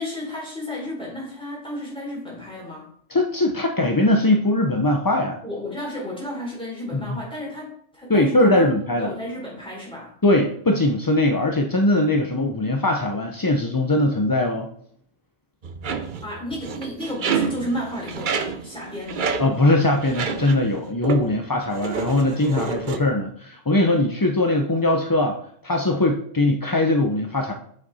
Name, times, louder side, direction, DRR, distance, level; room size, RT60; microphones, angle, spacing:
voice 1, 0.0-2.9 5.4-8.7 9.0-10.1 16.2-19.4, left 1 dB, 5° left, -5 dB, 4.0 m, -32 dB
voice 2, 3.1-5.4 6.9-7.2 8.1-9.1 10.2-14.7 19.4-27.5, left 1 dB, 25° left, 3 dB, 0.5 m, -21 dB
sound 1, 15.6-20.8 21.0-21.4 21.7-23.0, right 5 dB, 50° right, 0.7 m, -29 dB
7.6 x 6.5 x 4.1 m, 0.64 s
omnidirectional pair, 1.3 m